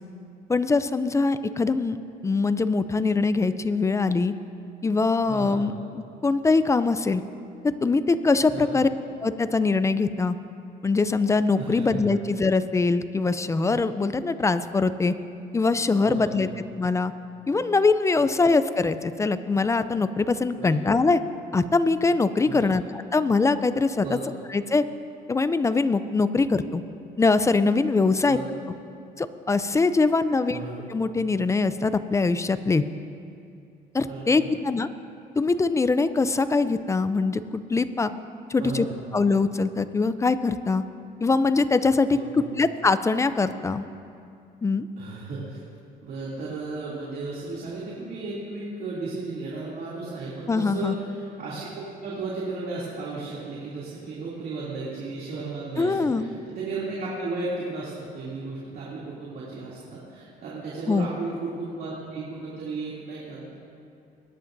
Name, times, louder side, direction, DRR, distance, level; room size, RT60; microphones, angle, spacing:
voice 1, 0.5-2.0 2.2-4.3 4.8-7.2 7.6-8.9 9.2-10.4 10.8-15.1 15.5-16.5 16.8-17.1 17.5-21.2 21.5-24.2 24.5-24.8 25.3-26.8 27.2-28.4 29.2-30.6 30.9-32.8 33.9-34.9 35.4-38.1 38.5-38.9 39.1-40.8 41.2-43.8 44.6-44.9 50.5-51.0 55.8-56.3 60.9-61.1, left 3 dB, 15° left, 13 dB, 0.4 m, -23 dB
voice 2, 5.3-5.6 8.5-8.8 11.6-11.9 15.9-16.4 20.5-20.7 22.4-22.7 24.0-24.3 28.3-28.4 30.5-30.8 34.1-34.5 38.6-39.0 42.1-42.5 45.0-45.6 46.0-63.5, right 3 dB, 65° right, -7 dB, 2.7 m, -34 dB
21.5 x 10.5 x 2.6 m, 2.5 s
cardioid pair, 110°, 17 cm